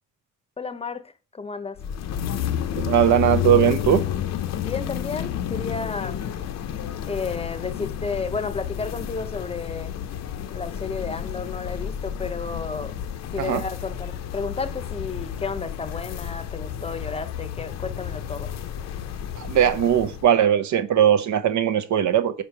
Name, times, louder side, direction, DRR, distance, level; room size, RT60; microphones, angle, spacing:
voice 1, 0.6-1.8 4.5-6.2 7.0-9.9 10.5-13.0 13.3-18.6, left 4 dB, 20° left, 0.7 m, -32 dB
sound 1, 1.8-20.3, left 9 dB, 60° left, 0.6 m, -31 dB
voice 2, 2.8-4.0 13.4-13.6 19.4-22.4, right 10 dB, 70° right, 0.7 m, -19 dB
5.1 x 5.0 x 4.6 m
cardioid pair, 90°, 30 cm